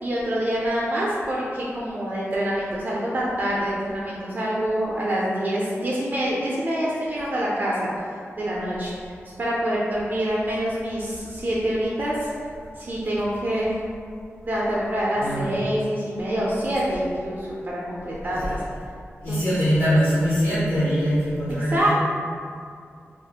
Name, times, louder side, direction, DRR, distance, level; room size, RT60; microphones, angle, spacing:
voice 1, 0.0-8.0 8.4-8.9 9.4-12.3 12.8-13.8 14.5-18.6 19.3-19.5 21.7-21.9, equal, 40° right, -6 dB, 0.4 m, -26 dB
voice 2, 15.2-15.5 18.3-18.4 19.2-21.9, equal, 45° left, -12 dB, 0.6 m, -22 dB
2.3 x 2.0 x 2.7 m, 2.2 s
wide cardioid pair, 105°, 5 cm